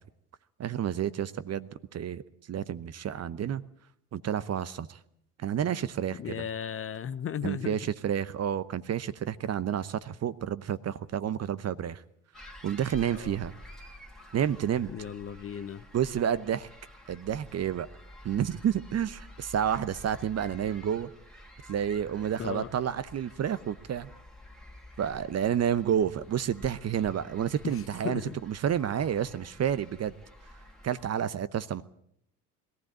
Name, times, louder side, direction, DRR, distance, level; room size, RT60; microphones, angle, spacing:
voice 1, 0.6-2.2 2.5-3.6 4.1-5.0 5.4-6.4 7.4-12.0 12.6-13.5 14.3-14.9 15.9-16.7 17.1-17.9 18.2-21.1 21.7-24.1 25.0-28.2 28.5-30.1 30.8-31.8, right 9 dB, 30° right, 0.9 m, -30 dB
voice 2, 6.2-7.8 13.1-13.4 14.9-15.9 22.4-22.7 27.6-28.4, left 8 dB, 30° left, 0.8 m, -36 dB
sound 1, 12.3-31.1, left 1 dB, ahead, 2.6 m, -50 dB
21.5 x 15.0 x 8.9 m
figure-of-eight pair, 65°, 48 cm